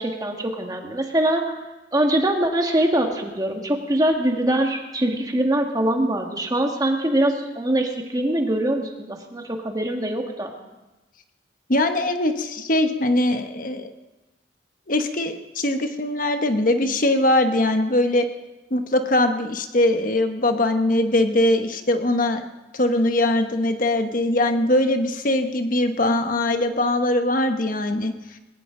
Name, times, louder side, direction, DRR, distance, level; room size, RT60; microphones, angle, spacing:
voice 1, 0.0-1.5 1.9-10.5, right 1 dB, 20° right, 2 dB, 1.8 m, -23 dB
voice 2, 11.7-13.9 14.9-18.2 18.7-22.4 22.7-28.1, left 1 dB, 50° left, 7 dB, 1.2 m, -21 dB
20.0 x 18.0 x 3.9 m, 1.1 s
head